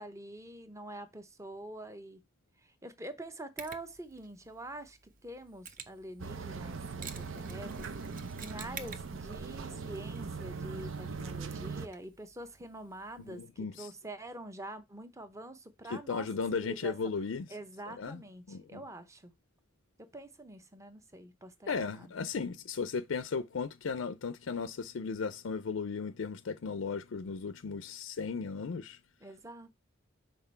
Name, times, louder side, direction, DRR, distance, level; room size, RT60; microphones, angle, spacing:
voice 1, 0.0-2.2 2.6-16.3 16.5-17.0 17.5-19.3 20.0-22.1 29.2-29.7, right 1 dB, 15° right, 0.8 m, -46 dB
Mechanisms, 3.6-13.5, right 6 dB, 45° right, 0.7 m, -52 dB
sound 1, 6.2-11.9, right 4 dB, 85° right, 0.7 m, -40 dB
voice 2, 13.3-13.9 15.9-17.5 18.0-18.2 18.5-18.8 21.7-29.0, left 5 dB, 80° left, 0.5 m, -36 dB
5.9 x 4.1 x 4.4 m
head